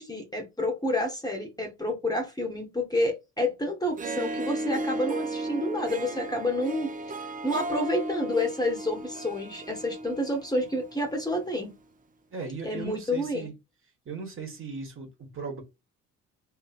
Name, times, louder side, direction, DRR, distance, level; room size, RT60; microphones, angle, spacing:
voice 1, 0.0-11.7 12.6-13.5, left 1 dB, 15° left, 0.9 m, -29 dB
Harp, 3.8-11.3, right 2 dB, 30° right, 0.5 m, -35 dB
voice 2, 12.3-13.5 14.0-15.6, right 4 dB, 45° right, 1.3 m, -37 dB
2.7 x 2.7 x 2.4 m
cardioid pair, 90°, 30 cm